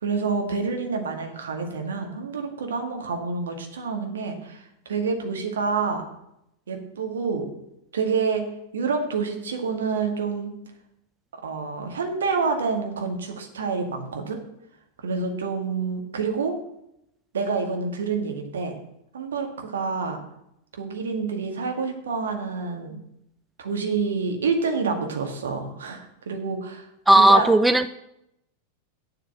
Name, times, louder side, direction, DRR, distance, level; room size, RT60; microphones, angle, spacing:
voice 1, 0.0-6.1 6.7-7.5 7.9-8.5 8.7-10.5 11.3-14.4 15.0-16.5 17.3-18.7 19.1-20.2 20.7-23.0 23.6-27.5, right 5 dB, 65° right, 4 dB, 1.8 m, -28 dB
voice 2, 27.1-27.9, right 1 dB, 5° right, 12 dB, 0.4 m, -15 dB
8.1 x 7.7 x 7.4 m, 0.81 s
figure-of-eight pair, 90°, 0 cm